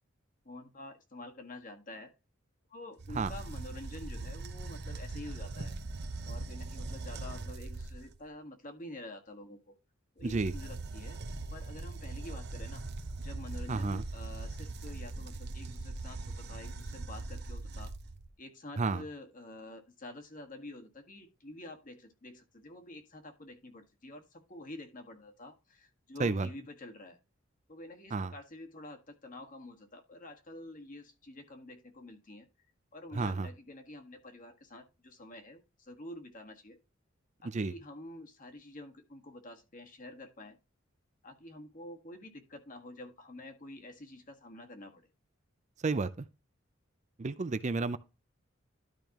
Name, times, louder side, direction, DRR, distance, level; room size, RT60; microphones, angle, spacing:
voice 1, 0.4-2.1 2.7-5.8 6.3-9.7 10.1-11.2 11.5-12.8 13.2-17.9 18.4-27.2 27.7-32.5 32.9-36.8 37.4-40.6 41.2-45.1, left 1 dB, 45° left, 1.7 m, -48 dB
sound 1, 3.0-8.2 10.2-18.3, right 2 dB, 55° right, 0.9 m, -41 dB
voice 2, 10.2-10.5 13.7-14.0 18.8-19.0 26.2-26.5 28.1-28.3 33.1-33.5 37.4-37.7 45.8-46.2 47.2-48.0, right 3 dB, 35° right, 0.5 m, -31 dB
12.5 x 5.2 x 3.0 m
head